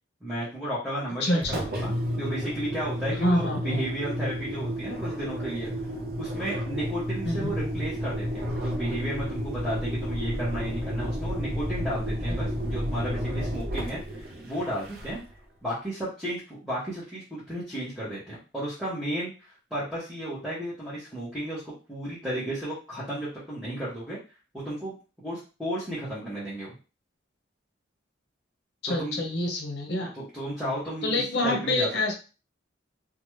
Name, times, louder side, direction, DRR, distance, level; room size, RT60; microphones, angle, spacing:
voice 1, 0.2-5.7 6.2-15.2 15.6-24.2 24.5-24.9 25.2-26.7 28.9-29.2 30.1-31.9, right 1 dB, ahead, -11 dB, 1.0 m, -33 dB
voice 2, 1.2-1.7 3.2-3.8 7.2-7.7 28.8-30.1 31.0-32.1, left 1 dB, 60° left, 2 dB, 0.7 m, -27 dB
Engine, 1.4-15.4, equal, 50° right, 0.6 m, -31 dB
2.8 x 2.3 x 3.1 m, 0.33 s
head